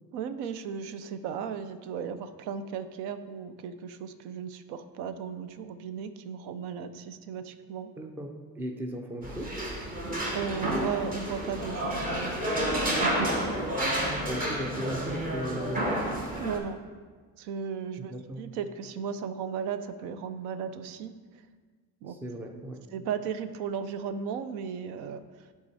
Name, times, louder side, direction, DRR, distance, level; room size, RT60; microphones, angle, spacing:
voice 1, 0.1-7.9 10.3-12.4 16.4-16.8 17.4-21.1 22.0-22.2 22.9-25.5, right 7 dB, 90° right, 11 dB, 0.6 m, -36 dB
voice 2, 8.0-9.5 14.1-16.1 18.0-18.4 22.1-22.8, equal, 5° right, 4 dB, 0.3 m, -37 dB
sound 1, 9.2-16.6, right 1 dB, 20° right, 1.0 m, -30 dB
11.0 x 3.7 x 4.1 m, 1.5 s
cardioid pair, 165°, 39 cm